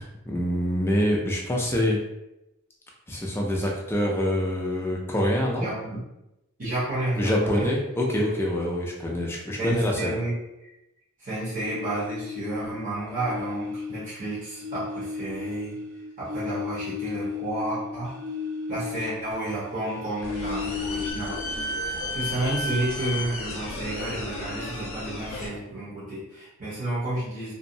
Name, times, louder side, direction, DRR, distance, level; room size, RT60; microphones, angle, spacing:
voice 1, 0.0-2.0 3.1-5.7 7.2-10.2, equal, 10° left, -1 dB, 0.3 m, -25 dB
voice 2, 5.5-6.0 6.6-7.7 9.6-10.3 10.6-10.7 11.2-15.8 16.2-18.2 18.7-21.4 22.1-27.5, right 1 dB, 40° right, -11 dB, 1.0 m, -31 dB
sound 1, 11.5-12.8 13.1-19.3 19.5-21.1, left 5 dB, 55° right, 0.6 m, -34 dB
sound 2, 20.2-25.5, left 1 dB, 65° left, 0.5 m, -33 dB
2.6 x 2.0 x 2.6 m, 0.91 s
head